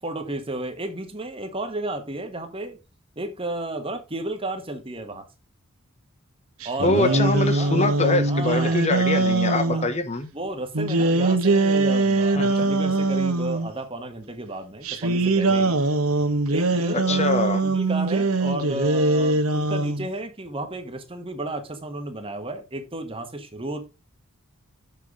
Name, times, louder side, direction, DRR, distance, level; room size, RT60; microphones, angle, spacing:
voice 1, 0.0-2.8 3.2-5.3 6.6-7.8 8.3-8.8 9.7-9.9 10.3-15.8 16.5-23.9, right 2 dB, 25° right, 1.3 m, -33 dB
sound 1, 6.6-9.9 10.7-13.7 14.8-20.1, right 2 dB, 80° right, 1.3 m, -22 dB
voice 2, 6.8-10.3 12.3-12.6 17.1-17.6, left 2 dB, 30° left, 1.1 m, -24 dB
7.3 x 5.7 x 4.9 m
head